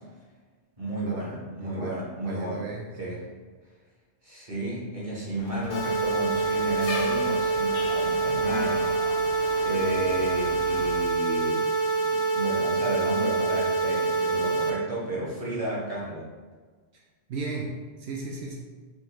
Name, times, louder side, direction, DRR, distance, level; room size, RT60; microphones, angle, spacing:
voice 1, 0.8-2.7 3.0-3.2 4.2-9.1 9.6-16.3, right 1 dB, 30° right, -6 dB, 1.5 m, -32 dB
voice 2, 1.6-3.2 16.9-17.0 17.3-18.6, right 3 dB, 75° right, 0 dB, 0.8 m, -36 dB
sound 1, 5.4-11.0, left 2 dB, 60° left, 0.8 m, -38 dB
sound 2, 5.7-14.7, right 3 dB, 75° left, 1.1 m, -26 dB
5.3 x 3.1 x 3.1 m, 1.4 s
omnidirectional pair, 1.1 m